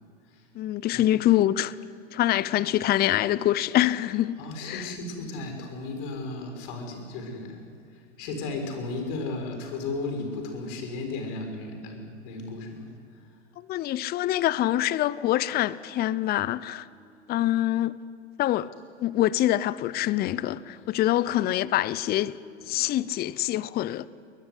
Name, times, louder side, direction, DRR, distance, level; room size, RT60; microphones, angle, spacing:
voice 1, 0.6-1.7 2.1-4.9 13.7-16.9 17.3-17.9 18.4-18.7 19.0-22.4 22.7-24.1, left 13 dB, 25° left, 0.7 m, -25 dB
voice 2, 4.4-7.6 7.9-12.9 17.0-17.4 22.6-23.0, left 3 dB, 50° left, 6.4 m, -35 dB
22.0 x 21.0 x 9.9 m
hypercardioid pair, 100°, 35 cm